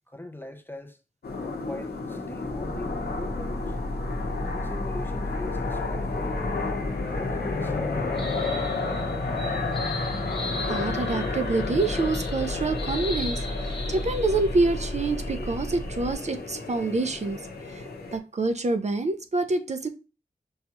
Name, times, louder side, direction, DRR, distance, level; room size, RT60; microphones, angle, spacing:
voice 1, 0.1-1.0 1.6-3.8 4.4-6.3 6.9-8.1, left 1 dB, 15° left, 0.4 m, -41 dB
sound 1, 1.2-18.2, left 3 dB, 75° left, 0.8 m, -32 dB
sound 2, 2.4-16.1, left 1 dB, 15° right, 0.8 m, -35 dB
sound 3, 7.0-14.9, left 2 dB, 30° left, 0.9 m, -40 dB
voice 2, 10.5-17.4 17.7-19.9, right 3 dB, 45° right, 0.5 m, -27 dB
5.4 x 2.3 x 2.9 m
wide cardioid pair, 105°, 17 cm